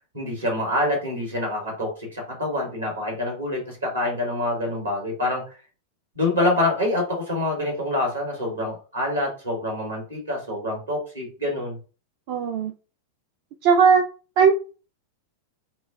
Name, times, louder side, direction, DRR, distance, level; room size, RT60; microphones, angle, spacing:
voice 1, 0.1-5.6 6.2-11.8, left 1 dB, 80° right, 1 dB, 2.0 m, -26 dB
voice 2, 12.3-12.7 13.6-14.1 14.4-14.5, right 6 dB, 50° right, 5 dB, 0.4 m, -17 dB
5.8 x 2.2 x 2.4 m, 0.36 s
figure-of-eight pair, 90°, 0 cm